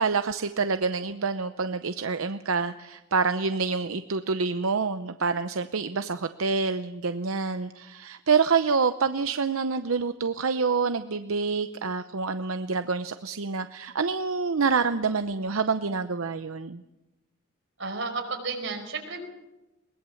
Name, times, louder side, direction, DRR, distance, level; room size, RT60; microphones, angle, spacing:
voice 1, 0.0-16.8, right 5 dB, 90° right, 10 dB, 0.7 m, -27 dB
voice 2, 17.8-19.3, right 3 dB, 65° right, 4 dB, 5.0 m, -32 dB
22.0 x 20.0 x 7.1 m, 1.0 s
head